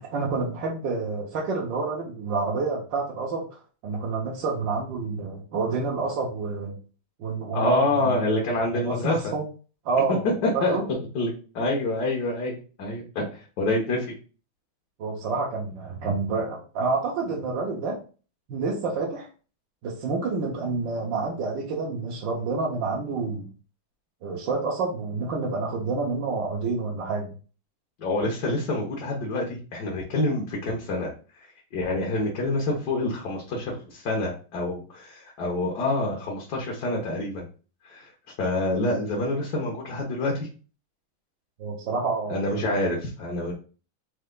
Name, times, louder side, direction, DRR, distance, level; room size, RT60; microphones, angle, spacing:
voice 1, 0.0-6.8 7.2-8.2 8.7-9.5 9.8-10.2 10.5-10.9 15.0-18.0 18.5-19.3 19.8-23.5 24.2-27.3 41.6-42.8, right 4 dB, 65° right, -4 dB, 1.5 m, -28 dB
voice 2, 7.5-9.3 10.2-14.1 28.0-31.1 31.7-37.4 37.8-38.1 38.4-40.5 42.3-43.5, left 2 dB, 55° left, -2 dB, 1.4 m, -27 dB
4.5 x 3.0 x 3.7 m, 0.37 s
omnidirectional pair, 2.3 m